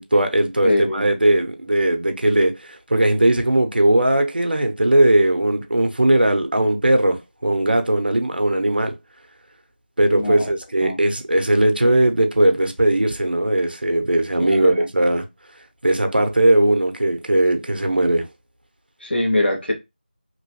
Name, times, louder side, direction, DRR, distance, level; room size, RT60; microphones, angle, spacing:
voice 1, 0.0-8.9 10.0-15.2 15.8-18.3, right 1 dB, 65° right, 0.8 m, -18 dB
voice 2, 0.6-1.1 10.1-10.5 10.8-11.0 14.4-14.9 19.0-19.7, left 1 dB, 85° left, 1.6 m, -22 dB
3.0 x 3.0 x 2.8 m
figure-of-eight pair, 180°, 6 cm